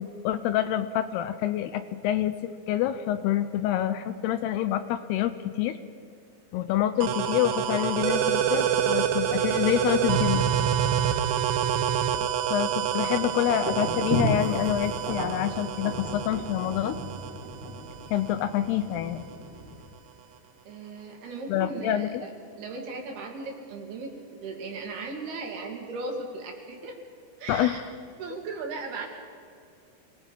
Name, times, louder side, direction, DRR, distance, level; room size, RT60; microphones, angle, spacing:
voice 1, 0.0-5.8 6.5-10.5 12.5-17.0 18.1-19.2 21.5-22.2 27.5-27.8, left 11 dB, 80° left, 11 dB, 2.6 m, -27 dB
sound 1, 7.0-18.4, right 9 dB, 80° right, 3.2 m, -27 dB
sound 2, 12.7-19.8, right 1 dB, 30° right, 4.8 m, -35 dB
voice 2, 20.7-22.3 22.6-27.0 27.4-27.9 28.2-29.1, right 3 dB, 65° right, 1 dB, 4.3 m, -37 dB
27.5 x 20.0 x 5.3 m, 2.3 s
omnidirectional pair, 5.0 m